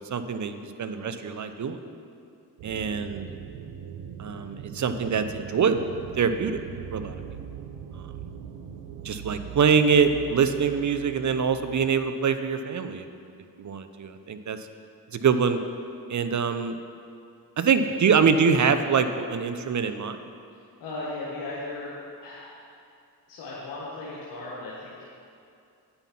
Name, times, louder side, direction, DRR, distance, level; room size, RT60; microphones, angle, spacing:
voice 1, 0.0-1.8 2.6-3.3 4.2-5.8 6.2-6.6 6.9-7.2 8.0-8.3 9.0-13.1 13.6-14.6 15.1-15.6 16.1-16.8 17.6-20.2, right 6 dB, 45° right, 9 dB, 0.7 m, -24 dB
sound 1, 2.6-11.9, right 8 dB, 85° right, 0.6 m, -41 dB
voice 2, 20.5-21.9 22.2-22.6 23.3-25.0, left 2 dB, 80° left, -7 dB, 1.3 m, -37 dB
8.9 x 5.5 x 5.8 m, 2.5 s
supercardioid pair, 40°, 42 cm